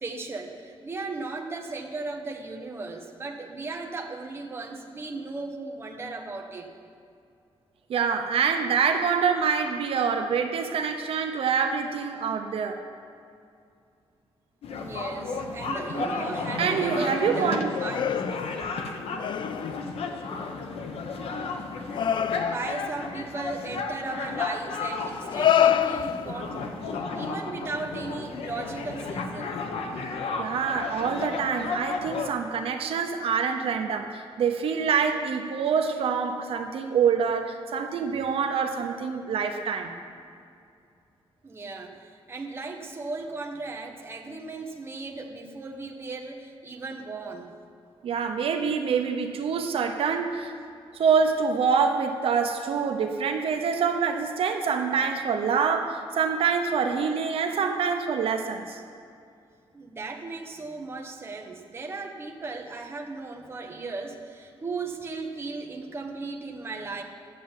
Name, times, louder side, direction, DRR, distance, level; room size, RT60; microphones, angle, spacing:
voice 1, 0.0-6.7 14.7-18.1 22.4-29.6 41.4-47.5 59.7-67.0, right 3 dB, 25° right, 1 dB, 1.2 m, -36 dB
voice 2, 7.9-12.8 16.6-17.7 30.4-39.9 48.0-50.5 50.9-58.8, right 6 dB, 75° right, 5 dB, 0.9 m, -26 dB
sound 1, 14.6-32.3, left 4 dB, 90° left, 1.1 m, -33 dB
sound 2, 15.7-16.2 16.5-18.9 19.2-19.9 20.4-20.7 21.9-22.9 24.1-24.2 25.1-26.6 28.0-28.1, left 9 dB, 55° left, 0.3 m, -27 dB
11.0 x 7.5 x 9.1 m, 2.4 s
wide cardioid pair, 160°, 10 cm